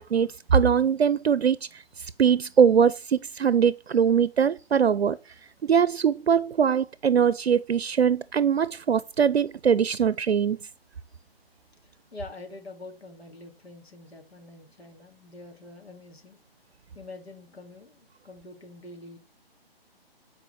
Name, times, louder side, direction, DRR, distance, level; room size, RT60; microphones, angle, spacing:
voice 1, 0.0-1.6 2.0-5.2 5.6-10.6, right 7 dB, 90° right, 0.6 m, -22 dB
voice 2, 12.1-16.4 16.9-19.2, left 2 dB, 85° left, 2.9 m, -45 dB
9.0 x 4.9 x 4.7 m
figure-of-eight pair, 145°, 30 cm